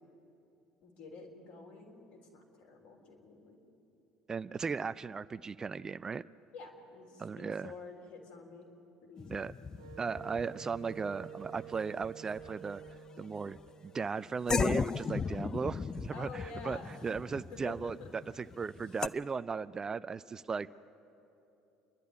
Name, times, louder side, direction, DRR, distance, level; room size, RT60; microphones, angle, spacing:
voice 1, 0.8-3.6 6.5-8.7 9.0-9.4 16.1-17.3 17.5-18.1 18.8-19.0, left 4 dB, 60° left, 0 dB, 3.7 m, -49 dB
voice 2, 4.3-6.2 7.2-7.7 9.3-9.5 10.0-12.8 13.2-13.6 13.8-20.7, right 5 dB, 30° right, 16 dB, 0.4 m, -37 dB
sound 1, 9.2-12.1 12.3-12.9 13.6-13.7 14.5-19.1, left 5 dB, 30° left, 0.5 m, -36 dB
Wind instrument woodwind instrument, 9.8-14.4, right 9 dB, 75° right, 1.6 m, -50 dB
28.5 x 11.5 x 9.6 m, 3.0 s
figure-of-eight pair, 60°, 2 cm